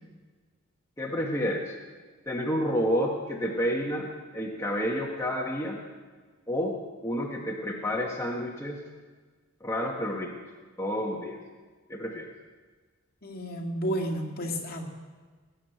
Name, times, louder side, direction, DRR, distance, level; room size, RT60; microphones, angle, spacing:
voice 1, 1.0-1.8 2.3-5.8 6.5-6.8 7.0-8.8 9.6-10.3 10.8-11.4 11.9-12.3, equal, 15° left, -2 dB, 1.4 m, -30 dB
voice 2, 13.2-14.8, equal, 45° left, 1 dB, 2.3 m, -31 dB
19.5 x 7.5 x 9.3 m, 1.4 s
head